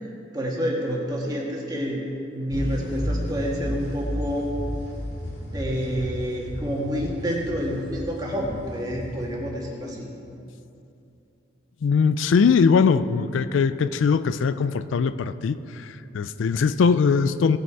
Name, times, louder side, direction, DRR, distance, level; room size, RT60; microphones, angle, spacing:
voice 1, 0.3-2.0 2.3-4.5 5.5-10.0, equal, 20° right, -2 dB, 1.6 m, -28 dB
sound 1, 2.5-9.9, equal, 60° left, 2.7 m, -33 dB
voice 2, 11.8-17.6, left 5 dB, 80° left, 13 dB, 0.4 m, -21 dB
17.5 x 6.2 x 4.6 m, 2.7 s
head